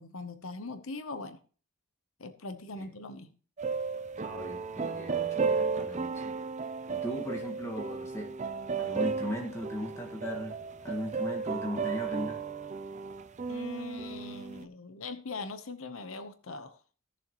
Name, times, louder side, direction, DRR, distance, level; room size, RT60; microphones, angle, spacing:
voice 1, 0.0-1.4 2.2-3.3 13.5-16.8, left 3 dB, 75° left, 10 dB, 1.0 m, -41 dB
sound 1, 3.6-14.6, right 5 dB, 35° right, 0.6 m, -34 dB
voice 2, 4.2-6.3 6.9-8.3 8.8-10.6 10.8-12.4, equal, 15° left, 2 dB, 1.7 m, -38 dB
16.5 x 7.0 x 3.0 m, 0.39 s
head